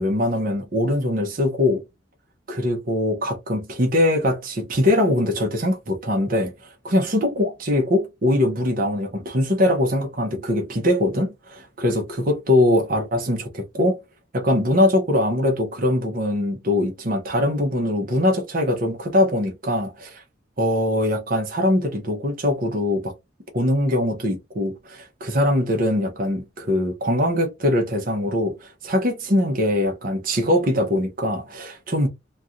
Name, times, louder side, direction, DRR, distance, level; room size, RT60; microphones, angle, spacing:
voice 1, 0.0-1.8 2.5-6.5 6.8-14.0 14.3-20.2 20.6-23.1 23.5-32.1, left 1 dB, 45° right, 0.9 m, -22 dB
3.2 x 2.4 x 2.6 m
head